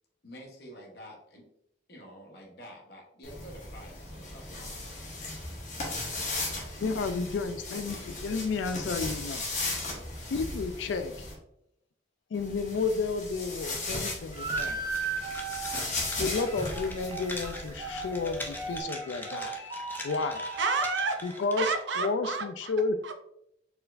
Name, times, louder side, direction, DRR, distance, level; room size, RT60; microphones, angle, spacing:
voice 1, 0.2-1.5 1.9-5.0, equal, 60° left, 0 dB, 1.0 m, -49 dB
sound 1, 3.2-11.3 12.3-18.8, left 2 dB, 40° left, 1.2 m, -37 dB
voice 2, 6.8-9.4 10.3-11.3 12.3-14.8 16.2-19.6 20.0-20.4 21.2-23.0, left 4 dB, 80° left, 9 dB, 0.3 m, -31 dB
sound 2, 14.3-21.4, right 4 dB, 20° right, 0.8 m, -37 dB
sound 3, 14.5-22.0, left 2 dB, 10° left, 0.5 m, -43 dB
voice 3, 20.6-21.2 21.6-22.7 23.0-23.1, right 4 dB, 75° right, 7 dB, 0.6 m, -30 dB
4.5 x 4.2 x 2.5 m, 0.77 s
head